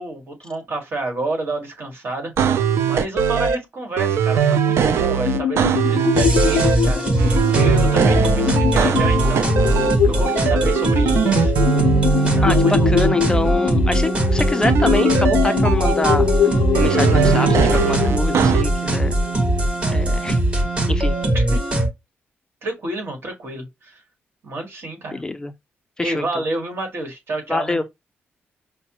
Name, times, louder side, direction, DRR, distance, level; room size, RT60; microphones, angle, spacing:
voice 1, 0.0-2.3 2.8-9.6 10.1-11.5 12.2-12.9 21.3-21.6 22.6-24.0 24.4-25.2 26.0-27.8, right 2 dB, 60° right, 1.6 m, -29 dB
sound 1, 2.4-3.6 4.0-6.8 7.2-10.0 10.3-13.2 14.6-16.1 16.7-18.6, right 7 dB, 80° right, 0.4 m, -20 dB
sound 2, 5.3-19.7, left 9 dB, 80° left, 0.4 m, -24 dB
sound 3, 6.1-21.9, right 1 dB, 25° right, 1.2 m, -20 dB
voice 2, 12.4-16.3 16.7-19.2 19.9-20.4 20.9-21.2 25.1-25.5 26.0-26.3 27.5-27.8, left 2 dB, 20° left, 0.4 m, -24 dB
5.4 x 2.0 x 2.9 m
cardioid pair, 95°, 4 cm